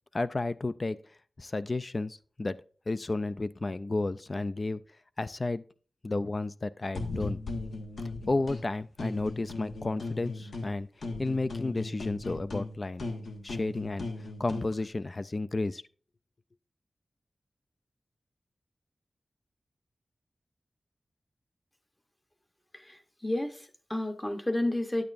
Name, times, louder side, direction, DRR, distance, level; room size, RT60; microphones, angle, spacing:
voice 1, 0.1-1.0 1.4-2.6 2.9-4.8 5.2-5.6 6.0-7.4 8.3-10.9 11.2-13.1 13.4-14.1 14.4-15.8, left 2 dB, 35° left, 0.3 m, -32 dB
sound 1, 6.9-8.6 9.0-10.7 11.0-14.7, left 2 dB, 90° left, 1.2 m, -37 dB
voice 2, 22.7-25.0, left 1 dB, 15° left, 0.8 m, -31 dB
9.4 x 8.8 x 2.5 m
wide cardioid pair, 115°, 0 cm